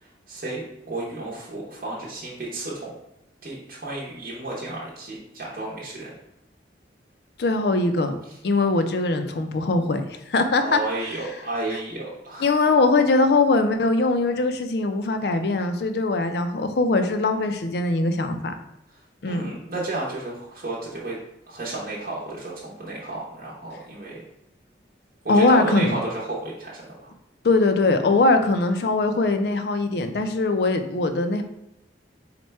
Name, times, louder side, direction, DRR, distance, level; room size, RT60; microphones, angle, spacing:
voice 1, 0.0-3.0 3.4-6.1 10.6-12.5 19.3-21.2 21.5-24.2 25.2-27.1, right 2 dB, 50° right, -6 dB, 0.8 m, -32 dB
voice 2, 7.4-8.2 8.4-10.0 10.3-10.8 12.4-18.5 19.2-19.5 25.3-26.0 27.4-31.4, left 3 dB, 65° left, 7 dB, 0.4 m, -21 dB
4.2 x 2.2 x 4.4 m, 0.84 s
head